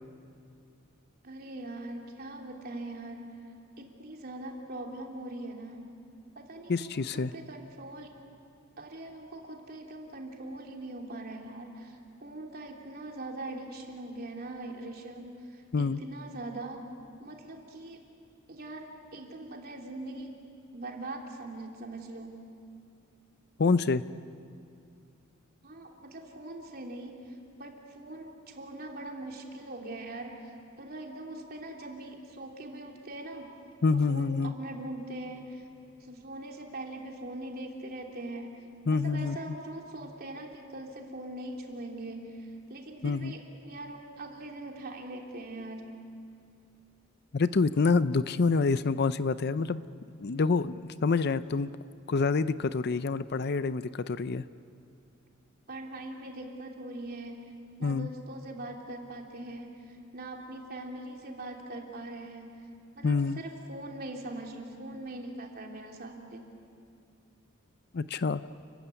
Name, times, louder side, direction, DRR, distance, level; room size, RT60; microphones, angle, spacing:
voice 1, 1.2-3.2 3.8-5.8 6.3-8.1 8.8-16.8 17.2-18.0 18.5-18.8 19.1-20.3 20.7-22.5 25.6-33.5 34.1-35.7 36.0-38.6 38.9-45.9 55.7-57.4 57.8-62.5 62.9-66.4, right 2 dB, 45° right, 0 dB, 3.2 m, -42 dB
voice 2, 6.7-7.3 15.7-16.0 23.6-24.0 33.8-34.5 38.9-39.4 43.0-43.3 47.3-49.8 50.2-51.7 52.1-54.4 57.8-58.1 63.0-63.4 67.9-68.4, left 4 dB, 50° left, 14 dB, 0.5 m, -27 dB
30.0 x 15.5 x 9.7 m, 2.5 s
head